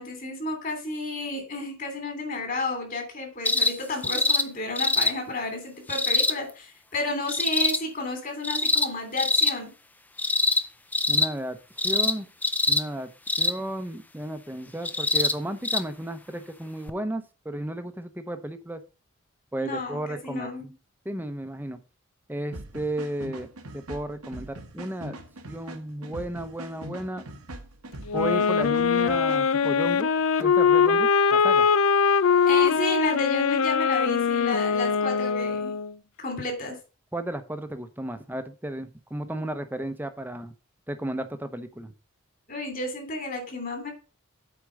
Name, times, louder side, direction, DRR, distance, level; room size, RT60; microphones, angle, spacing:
voice 1, 0.0-9.7 19.6-20.6 32.5-35.8 36.2-36.8 42.5-43.9, left 2 dB, 40° left, 4 dB, 3.0 m, -32 dB
sound 1, 3.4-3.7 4.0-4.4 4.8-5.1 5.9-6.3 7.3-7.8 8.4-8.9 9.2-9.5 10.2-10.6 10.9-11.3 11.8-12.1 12.4-12.8 13.3-13.6 14.8-15.3 15.6-15.8 16.9-17.0, left 2 dB, 10° left, 0.4 m, -23 dB
voice 2, 11.1-11.6 11.8-12.3 12.7-13.1 13.4-18.8 19.5-20.7 21.0-21.8 22.3-23.5 23.7-25.2 25.5-27.2 28.1-31.7 37.1-40.5 40.9-41.9, right 1 dB, 10° right, 9 dB, 0.8 m, -33 dB
sound 2, 22.5-29.7, right 1 dB, 85° right, 1.4 m, -42 dB
sound 3, 28.1-35.9, left 6 dB, 75° left, 0.5 m, -22 dB
8.3 x 4.6 x 6.3 m, 0.33 s
head